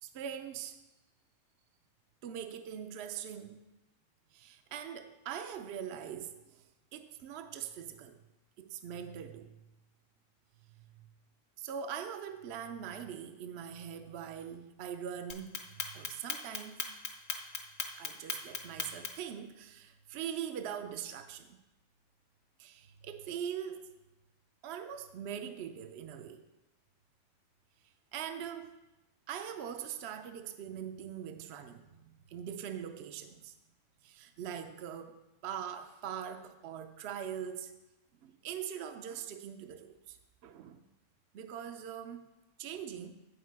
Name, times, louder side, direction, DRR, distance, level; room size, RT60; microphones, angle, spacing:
voice 1, 0.0-0.8 2.2-3.6 4.3-8.2 8.6-9.6 10.7-11.1 11.6-16.8 18.0-21.6 22.6-23.9 24.6-26.4 28.1-28.8 29.3-33.5 34.0-37.8 38.2-40.2 40.4-40.8 41.3-42.3 42.6-43.1, right 8 dB, 65° right, 0.7 m, -42 dB
Clock, 15.3-19.3, left 5 dB, 60° left, 1.2 m, -37 dB
8.4 x 6.5 x 4.6 m
omnidirectional pair, 1.3 m